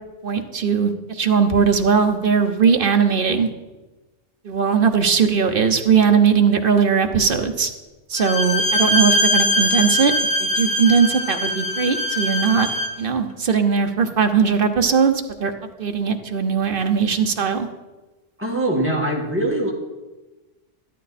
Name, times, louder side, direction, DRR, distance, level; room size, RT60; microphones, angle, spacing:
voice 1, 0.2-3.5 4.4-7.7 8.1-10.1 10.4-12.7 13.0-15.5 15.8-17.7, right 6 dB, 50° right, 6 dB, 1.1 m, -19 dB
Bowed string instrument, 8.2-13.0, left 1 dB, 40° left, 1.5 m, -21 dB
voice 2, 18.4-19.7, right 1 dB, 10° right, -2 dB, 2.1 m, -22 dB
13.0 x 11.5 x 4.2 m, 1.1 s
omnidirectional pair, 1.3 m